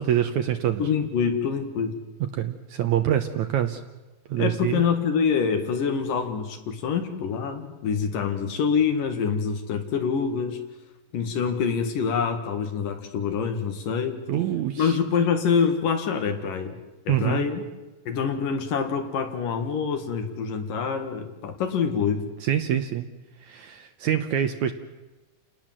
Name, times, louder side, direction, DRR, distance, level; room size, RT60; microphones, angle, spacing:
voice 1, 0.0-0.8 2.3-3.8 4.3-4.8 14.3-15.0 17.1-17.4 22.4-23.1 23.4-24.7, right 10 dB, 70° right, 8 dB, 1.9 m, -25 dB
voice 2, 0.8-2.0 4.4-10.6 11.1-14.2 14.8-16.8 17.0-17.6 18.1-22.3, left 6 dB, 65° left, 6 dB, 3.4 m, -26 dB
29.5 x 18.5 x 7.6 m, 1.1 s
omnidirectional pair, 4.2 m